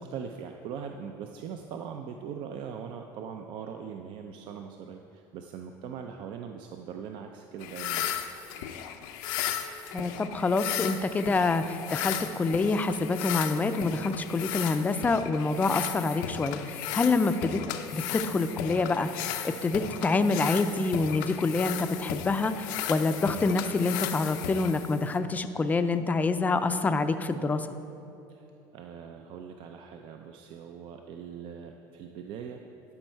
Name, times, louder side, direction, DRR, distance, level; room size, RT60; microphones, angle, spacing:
voice 1, 0.0-8.1 17.1-17.4 28.3-28.4 28.7-32.6, right 7 dB, 60° right, 4 dB, 0.5 m, -41 dB
sound 1, 7.6-25.2, left 10 dB, 90° left, 0.5 m, -35 dB
voice 2, 9.9-17.6 17.9-27.7, left 3 dB, 15° left, 10 dB, 0.4 m, -27 dB
11.5 x 5.4 x 4.6 m, 2.8 s
supercardioid pair, 120°, 10 cm